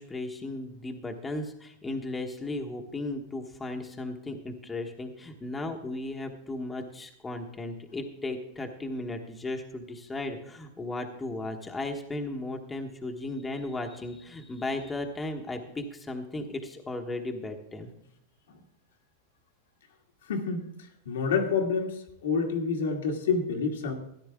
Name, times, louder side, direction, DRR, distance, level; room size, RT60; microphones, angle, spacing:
voice 1, 0.0-17.9, left 2 dB, 10° left, 3 dB, 1.2 m, -36 dB
voice 2, 20.3-20.7 21.1-23.9, left 5 dB, 90° left, 2 dB, 2.1 m, -28 dB
13.5 x 11.0 x 3.6 m, 0.76 s
supercardioid pair, 130°, 0 cm